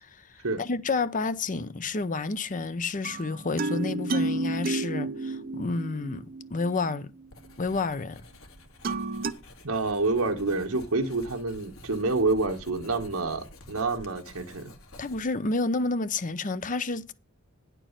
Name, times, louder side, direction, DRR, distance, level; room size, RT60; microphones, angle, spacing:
voice 1, 0.6-6.3 6.5-7.1 7.6-8.2 15.0-17.1, left 3 dB, 35° left, 0.7 m, -30 dB
sound 1, 3.0-7.0 8.8-9.3, right 2 dB, 45° right, 0.7 m, -31 dB
Writing, 7.3-15.5, left 1 dB, 70° left, 2.2 m, -50 dB
voice 2, 9.6-14.7, right 3 dB, 75° right, 1.5 m, -28 dB
10.0 x 4.6 x 7.3 m
head